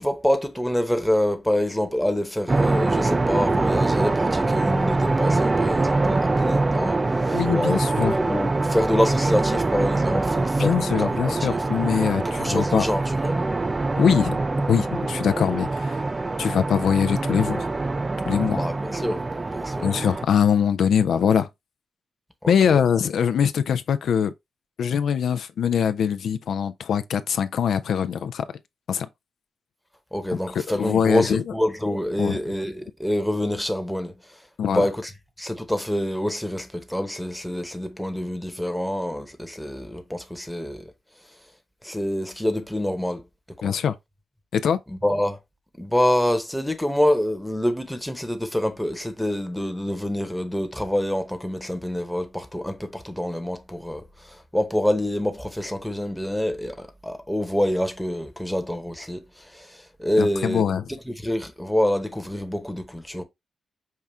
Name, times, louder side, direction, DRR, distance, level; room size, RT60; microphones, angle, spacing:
voice 1, 0.0-11.6 12.2-13.4 18.5-19.2 19.5-19.9 22.4-22.8 30.1-34.4 34.7-35.1 35.4-40.9 41.8-43.6 44.9-45.4 45.7-60.8 61.1-63.2, left 1 dB, 5° left, 0.9 m, -26 dB
sound 1, 2.5-20.3, right 3 dB, 30° right, 0.3 m, -24 dB
voice 2, 7.3-8.1 10.6-12.9 14.0-14.4 14.7-16.0 16.4-17.7 18.3-18.6 19.8-21.5 22.5-24.3 24.8-28.4 28.9-29.1 30.3-30.4 30.7-31.4 32.2-32.4 34.6-34.9 43.6-44.0 44.5-44.8 60.2-60.8, left 7 dB, 80° left, 0.3 m, -22 dB
5.5 x 2.4 x 3.3 m
cardioid pair, 70°, 0 cm